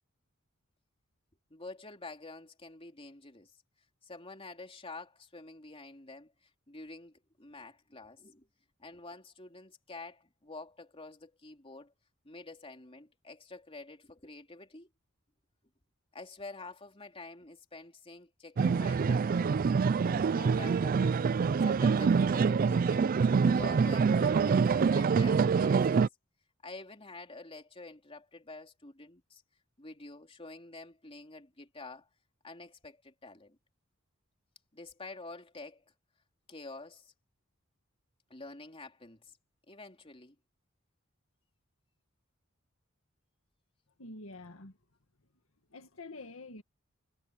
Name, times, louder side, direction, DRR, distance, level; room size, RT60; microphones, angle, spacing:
voice 1, 1.5-3.5 4.0-6.3 6.7-8.5 8.8-11.9 12.2-14.9 16.1-19.6 20.0-21.2 21.6-23.1 23.4-26.1 26.6-29.4 29.8-32.1 32.4-33.6 34.7-35.8 36.5-37.1 38.3-39.4 39.7-40.4, left 3 dB, 25° left, 3.4 m, -48 dB
sound 1, 18.6-26.1, right 5 dB, 45° right, 0.3 m, -26 dB
voice 2, 44.0-44.8 45.7-46.6, left 2 dB, 75° left, 2.0 m, -47 dB
head